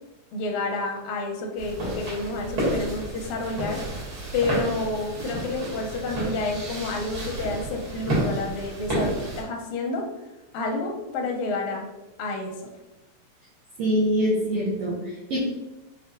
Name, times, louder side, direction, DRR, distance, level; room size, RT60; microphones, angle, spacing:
voice 1, 0.3-3.8 4.3-10.1 10.5-11.9 12.2-12.5, left 3 dB, 80° left, 1 dB, 1.6 m, -29 dB
sound 1, 1.6-9.4, right 1 dB, 50° right, 1.7 m, -31 dB
voice 2, 13.8-15.4, equal, 80° right, -7 dB, 1.4 m, -24 dB
5.4 x 2.3 x 2.5 m, 1.0 s
omnidirectional pair, 3.6 m